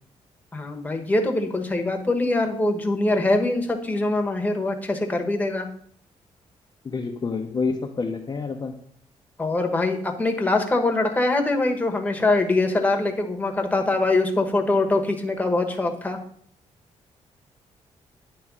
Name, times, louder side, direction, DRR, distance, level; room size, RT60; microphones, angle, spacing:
voice 1, 0.5-5.7 9.4-16.2, left 2 dB, 10° left, 3 dB, 1.1 m, -23 dB
voice 2, 6.8-8.8, left 4 dB, 35° left, 1 dB, 0.7 m, -28 dB
9.3 x 3.1 x 6.1 m, 0.63 s
cardioid pair, 100°, 12 cm